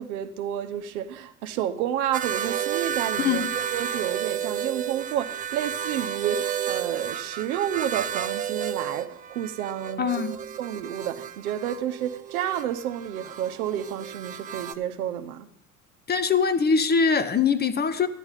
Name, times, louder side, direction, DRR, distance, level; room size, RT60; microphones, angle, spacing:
voice 1, 0.0-10.2 10.6-15.5, right 10 dB, 75° right, 0.9 m, -30 dB
sound 1, 2.1-14.7, right 9 dB, 20° right, 0.3 m, -32 dB
voice 2, 10.0-10.3 16.1-18.1, left 5 dB, 20° left, 0.7 m, -22 dB
12.0 x 10.0 x 4.0 m
hypercardioid pair, 75°, 44 cm